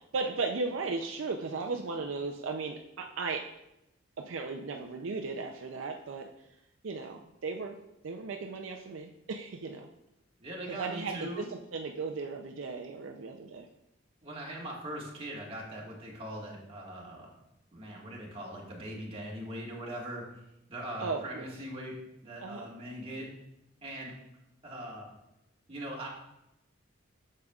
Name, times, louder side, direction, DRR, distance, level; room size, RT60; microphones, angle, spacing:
voice 1, 0.0-3.5 4.2-6.3 6.8-7.8 8.0-9.9 10.7-13.7 21.0-21.5 22.4-22.7, right 4 dB, 70° right, 3 dB, 0.5 m, -36 dB
voice 2, 10.4-11.5 14.2-17.3 17.7-20.2 20.7-21.9 22.2-23.3 23.8-24.1 24.6-25.1 25.7-26.1, right 1 dB, 30° right, -3 dB, 1.7 m, -41 dB
8.4 x 6.6 x 2.4 m, 0.86 s
head